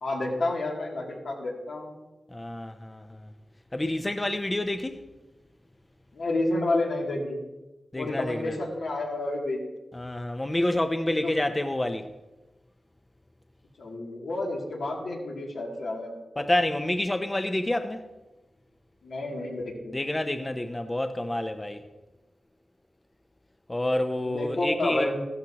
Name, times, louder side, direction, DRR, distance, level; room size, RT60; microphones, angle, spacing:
voice 1, 0.0-1.9 6.1-7.4 7.9-9.6 11.0-11.3 13.8-16.4 19.0-20.0 24.3-25.2, left 2 dB, 85° left, 2.6 m, -30 dB
voice 2, 2.3-3.3 3.7-5.0 7.9-8.6 9.9-12.1 16.4-18.0 19.9-21.8 23.7-25.1, left 1 dB, 20° left, 0.6 m, -28 dB
14.5 x 12.5 x 2.9 m
wide cardioid pair, 115°, 0 cm